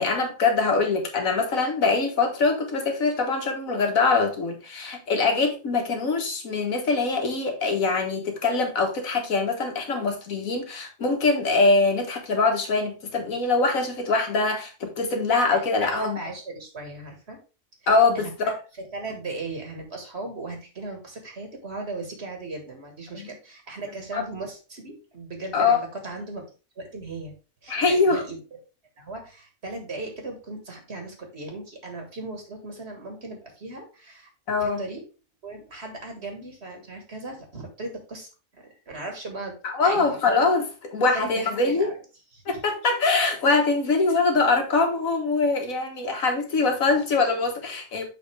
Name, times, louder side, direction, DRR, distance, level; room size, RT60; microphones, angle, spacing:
voice 1, 0.0-16.2 17.9-18.6 23.1-23.3 24.1-24.2 25.5-25.8 27.7-28.2 34.5-34.8 39.6-41.9 42.5-48.1, left 3 dB, 80° left, 1.8 m, -23 dB
voice 2, 15.9-17.4 17.8-18.5 18.8-26.4 26.8-27.3 27.6-28.4 29.0-34.3 34.6-35.0 35.4-39.6 39.8-40.2 41.1-41.9 42.3-42.6, right 2 dB, 50° right, 1.9 m, -37 dB
6.9 x 5.4 x 3.3 m
omnidirectional pair, 1.4 m